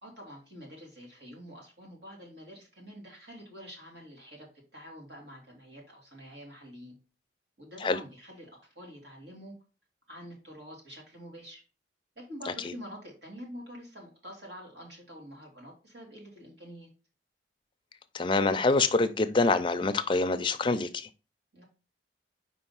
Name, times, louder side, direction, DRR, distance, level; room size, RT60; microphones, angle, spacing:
voice 1, 0.0-7.0 7.6-8.5 8.7-9.5 10.1-11.6 12.2-16.9 21.5-21.6, equal, 75° right, -1 dB, 2.5 m, -47 dB
voice 2, 18.1-21.1, left 3 dB, 25° left, 9 dB, 0.5 m, -25 dB
5.0 x 3.5 x 5.5 m, 0.33 s
head